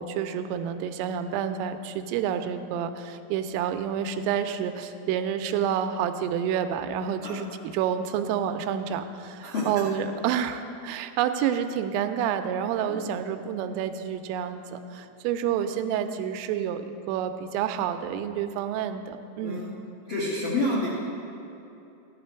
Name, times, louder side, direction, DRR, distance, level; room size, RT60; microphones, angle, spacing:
voice 1, 0.0-19.6, right 8 dB, 85° right, 8 dB, 3.2 m, -29 dB
voice 2, 9.4-9.8 12.9-13.1 19.4-19.7 20.1-20.9, left 2 dB, 70° left, -6 dB, 1.2 m, -29 dB
14.0 x 11.0 x 4.5 m, 2.8 s
omnidirectional pair, 5.8 m